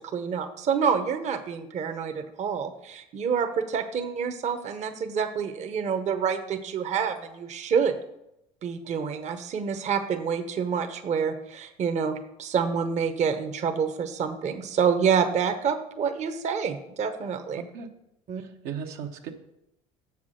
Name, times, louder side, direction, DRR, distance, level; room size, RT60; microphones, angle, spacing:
voice 1, 0.1-7.9 8.6-17.6 18.3-18.4, right 6 dB, 45° right, 7 dB, 0.9 m, -27 dB
voice 2, 18.4-19.3, right 7 dB, 70° right, 3 dB, 1.0 m, -36 dB
7.3 x 5.9 x 6.3 m, 0.83 s
supercardioid pair, 80°, 17 cm